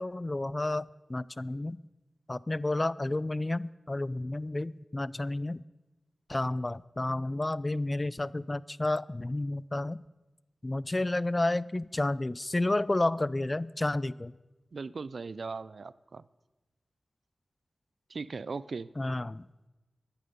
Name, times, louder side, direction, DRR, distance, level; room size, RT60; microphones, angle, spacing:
voice 1, 0.0-1.8 2.3-5.6 6.3-10.0 10.6-14.3 19.0-19.5, left 2 dB, 30° left, 21 dB, 0.3 m, -31 dB
voice 2, 14.7-16.2 18.1-18.9, right 4 dB, 70° right, 18 dB, 0.4 m, -38 dB
14.5 x 10.0 x 5.3 m, 1.1 s
cardioid pair, 55°, 0 cm